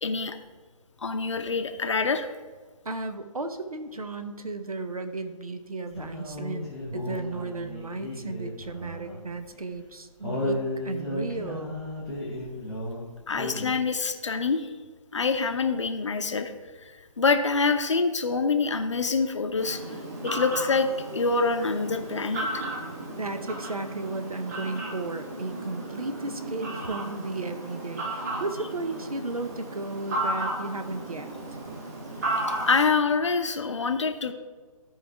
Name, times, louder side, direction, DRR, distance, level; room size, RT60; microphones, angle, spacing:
voice 1, 0.0-0.4 1.0-2.3 13.3-14.7 15.1-16.5 17.2-19.8 20.2-20.9 21.1-22.5 32.7-34.3, left 4 dB, 50° left, 7 dB, 0.7 m, -25 dB
voice 2, 2.8-11.8 22.8-31.3, right 3 dB, 70° right, 8 dB, 0.9 m, -34 dB
sound 1, 5.9-9.3 9.5-9.6 10.2-13.0 13.3-13.7, left 1 dB, ahead, 0.4 m, -34 dB
Fowl, 19.6-32.8, right 1 dB, 25° right, 1.4 m, -34 dB
13.5 x 4.8 x 3.4 m, 1.4 s
figure-of-eight pair, 145°, 19 cm